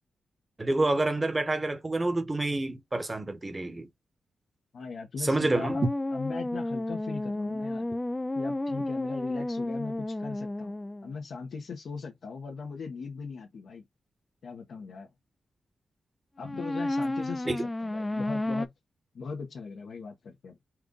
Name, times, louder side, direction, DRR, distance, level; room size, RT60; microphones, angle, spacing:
voice 1, 0.6-3.9 5.2-5.8 17.5-17.6, right 2 dB, 25° right, 1.3 m, -28 dB
voice 2, 4.7-7.9 8.3-10.7 11.0-13.8 14.4-15.1 16.4-18.7 19.1-20.6, left 5 dB, 70° left, 1.3 m, -39 dB
sound 1, 5.7-11.1 16.4-18.7, left 1 dB, 15° left, 0.5 m, -32 dB
4.5 x 2.5 x 3.8 m
cardioid pair, 85°, 0 cm